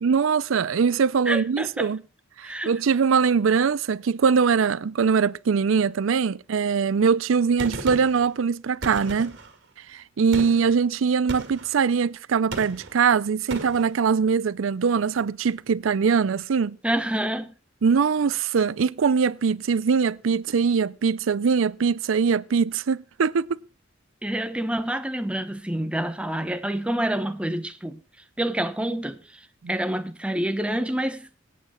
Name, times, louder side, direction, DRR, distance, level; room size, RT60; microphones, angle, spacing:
voice 1, 0.0-2.0 2.4-9.4 9.9-16.8 17.8-23.6 29.6-29.7, right 6 dB, 75° right, 0.5 m, -22 dB
voice 2, 1.3-1.9 2.4-2.7 16.8-17.5 24.2-28.0 28.4-29.4 29.7-31.3, right 1 dB, 5° right, 1.0 m, -27 dB
Gunshot gunfire, 7.6-8.3 8.8-9.5 10.3-10.7 11.3-11.7 12.5-13.0 13.5-13.9, right 2 dB, 60° right, 2.3 m, -35 dB
25.5 x 8.6 x 2.3 m
head